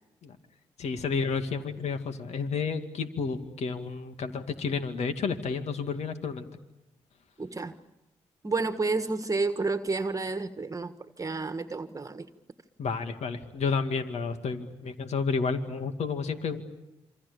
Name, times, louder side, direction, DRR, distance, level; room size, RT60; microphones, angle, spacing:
voice 1, 0.8-6.5 12.8-16.6, left 5 dB, 65° left, 2.3 m, -31 dB
voice 2, 7.4-7.8 8.4-12.3, right 3 dB, 30° right, 1.6 m, -30 dB
27.5 x 26.0 x 6.9 m
supercardioid pair, 50°, 12 cm